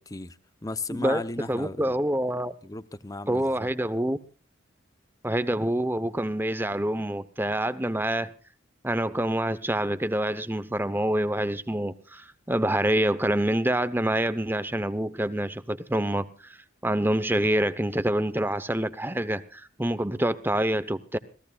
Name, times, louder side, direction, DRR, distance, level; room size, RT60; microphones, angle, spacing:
voice 1, 0.0-1.9 2.6-3.7, left 2 dB, 15° left, 0.8 m, -36 dB
voice 2, 0.9-1.2 1.5-2.5 3.3-4.2 5.2-8.3 8.8-16.6 16.8-21.2, right 1 dB, 10° right, 0.9 m, -26 dB
26.5 x 17.5 x 2.4 m
head